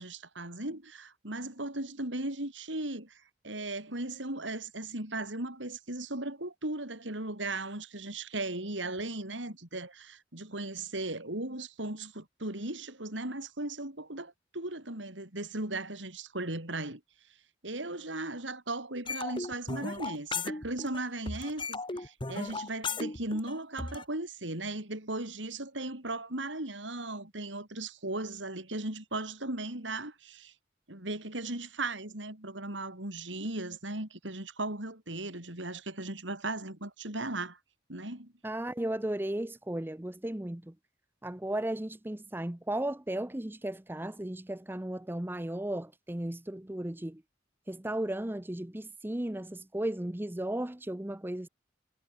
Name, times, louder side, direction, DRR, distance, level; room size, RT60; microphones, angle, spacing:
voice 1, 0.0-17.0 17.6-30.5 30.9-37.6 37.9-38.3, right 2 dB, 80° right, 5.9 m, -37 dB
sound 1, 19.1-21.0 21.3-24.0, left 3 dB, 25° left, 2.2 m, -36 dB
voice 2, 38.4-40.7 41.2-47.2 47.7-51.5, right 1 dB, 10° right, 0.7 m, -35 dB
head